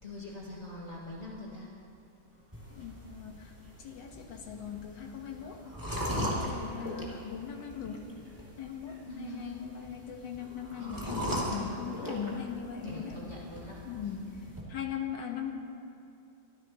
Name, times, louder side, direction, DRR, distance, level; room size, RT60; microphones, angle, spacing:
voice 1, 0.0-1.7 2.5-2.7 9.1-9.5 10.8-11.8 12.8-13.8, left 1 dB, 35° left, -6 dB, 2.3 m, -44 dB
sound 1, 2.5-14.6, equal, 10° right, 2.4 m, -39 dB
voice 2, 2.7-5.6 6.1-8.1 8.6-13.2 13.8-15.5, left 7 dB, 65° left, 2 dB, 2.0 m, -40 dB
25.0 x 15.0 x 3.1 m, 2.6 s
omnidirectional pair, 2.1 m